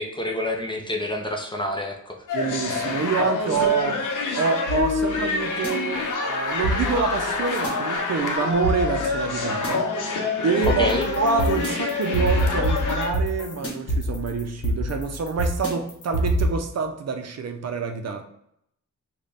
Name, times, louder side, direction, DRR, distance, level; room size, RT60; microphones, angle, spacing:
voice 1, 0.0-2.2 10.7-11.1, left 1 dB, 15° left, 1 dB, 0.4 m, -27 dB
sound 1, 2.3-13.1, left 3 dB, 85° left, 0.7 m, -27 dB
voice 2, 2.3-4.1 4.3-18.2, right 5 dB, 60° right, 6 dB, 0.5 m, -27 dB
sound 2, 4.7-5.7 6.6-7.7 8.6-9.7 10.6-16.5, equal, 50° left, 1.1 m, -26 dB
3.9 x 2.2 x 3.3 m, 0.74 s
wide cardioid pair, 150°, 30 cm